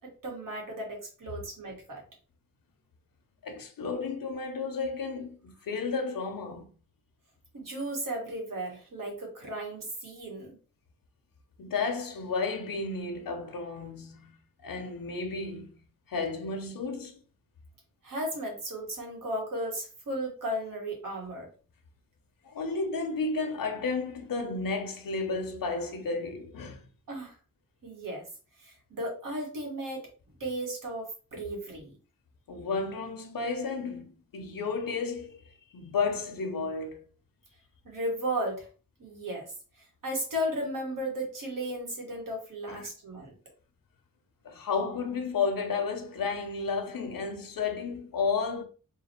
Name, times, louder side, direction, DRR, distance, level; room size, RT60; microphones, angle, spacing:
voice 1, 0.2-2.0 7.5-10.6 18.0-21.5 27.1-27.3 27.8-28.2 28.6-30.1 30.4-31.9 37.8-38.7 39.0-39.5 40.0-43.3, right 1 dB, 75° right, 1.7 m, -35 dB
voice 2, 3.4-6.7 11.6-14.3 14.6-15.7 16.1-17.1 22.4-26.9 32.5-35.4 35.7-37.0 42.7-42.9 44.4-48.6, left 4 dB, 90° left, 0.8 m, -32 dB
3.8 x 2.4 x 4.4 m
wide cardioid pair, 160°, 33 cm